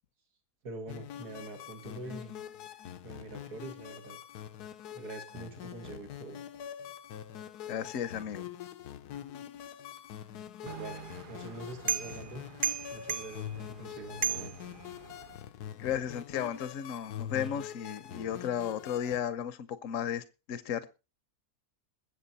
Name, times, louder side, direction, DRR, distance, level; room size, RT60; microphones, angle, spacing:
voice 1, 0.6-2.4 3.0-4.2 4.9-6.4 10.6-12.4 12.9-14.7, right 2 dB, 75° right, 2.5 m, -44 dB
sound 1, 0.9-19.2, left 10 dB, 80° left, 1.3 m, -44 dB
voice 2, 7.7-8.5 15.8-20.9, left 9 dB, 60° left, 1.1 m, -34 dB
sound 2, 10.7-15.4, right 8 dB, 45° right, 0.7 m, -37 dB
21.5 x 7.5 x 4.1 m
omnidirectional pair, 1.7 m